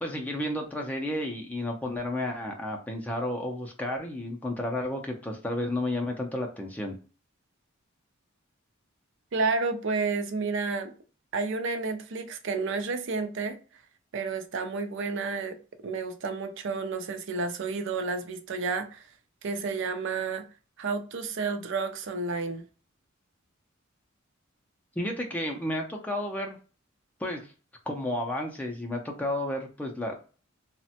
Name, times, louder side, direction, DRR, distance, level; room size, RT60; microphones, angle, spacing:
voice 1, 0.0-7.0 25.0-26.6 27.2-27.5 27.9-30.2, left 1 dB, 10° left, 0.4 m, -32 dB
voice 2, 9.3-10.9 11.3-13.6 14.1-15.6 15.8-19.1 19.4-20.4 20.8-22.7, right 4 dB, 65° right, 0.5 m, -31 dB
3.1 x 2.1 x 2.7 m
head